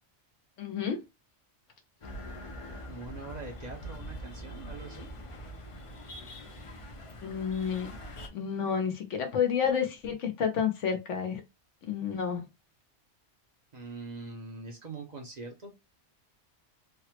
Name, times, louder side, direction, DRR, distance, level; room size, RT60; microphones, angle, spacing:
voice 1, 0.6-1.0 7.2-7.9 8.3-11.4 11.8-12.4, left 7 dB, 90° left, 1.1 m, -30 dB
sound 1, 2.0-8.3, equal, 45° left, 0.4 m, -43 dB
voice 2, 2.8-5.1 13.7-15.7, right 3 dB, 45° right, 0.7 m, -43 dB
3.5 x 2.0 x 2.9 m
omnidirectional pair, 1.2 m